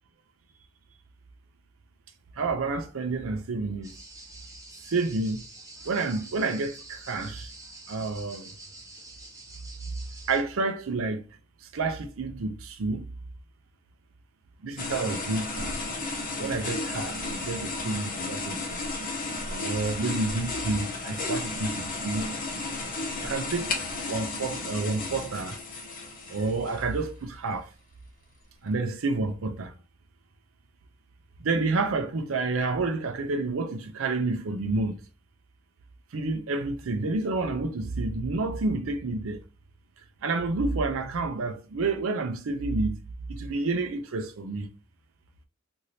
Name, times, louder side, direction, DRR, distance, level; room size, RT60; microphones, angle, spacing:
voice 1, 2.3-3.9 4.9-5.4 5.8-7.5 7.9-8.5 10.3-11.2 11.6-13.1 14.6-15.9 16.4-18.8 19.4-22.3 23.2-25.6 26.3-27.7 28.6-29.7 31.4-35.0 36.1-39.4 40.2-43.0 43.3-44.7, right 3 dB, 80° right, 0.5 m, -29 dB
sound 1, 3.8-10.4, right 2 dB, 15° right, 1.2 m, -47 dB
sound 2, 14.8-27.1, left 3 dB, 45° left, 0.7 m, -33 dB
2.7 x 2.6 x 3.1 m
head